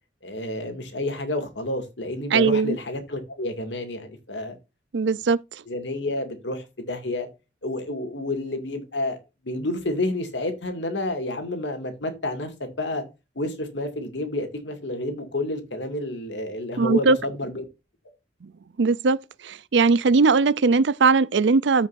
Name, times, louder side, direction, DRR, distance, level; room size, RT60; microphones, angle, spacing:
voice 1, 0.2-4.5 5.7-7.3 7.6-9.2 9.4-13.0 13.4-17.6, left 2 dB, 75° left, 2.4 m, -30 dB
voice 2, 2.3-2.8 4.9-5.4 16.8-17.2 18.8-19.2 19.4-21.9, right 4 dB, 75° right, 0.5 m, -19 dB
14.0 x 5.4 x 2.6 m
head